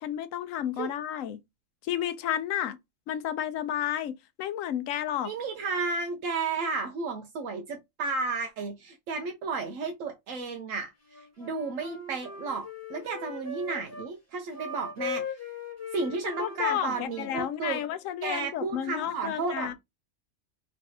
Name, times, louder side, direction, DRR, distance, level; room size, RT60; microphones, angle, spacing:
voice 1, 0.0-1.4 1.9-2.8 3.1-4.1 4.4-5.3 16.2-19.7, left 11 dB, 80° left, 1.0 m, -31 dB
voice 2, 5.2-10.9 11.4-15.3 15.9-17.8 18.2-19.7, right 4 dB, 80° right, 1.1 m, -33 dB
Wind instrument woodwind instrument, 11.1-14.1 14.5-17.9, left 4 dB, 10° left, 1.4 m, -40 dB
3.3 x 3.2 x 2.7 m
omnidirectional pair, 1.3 m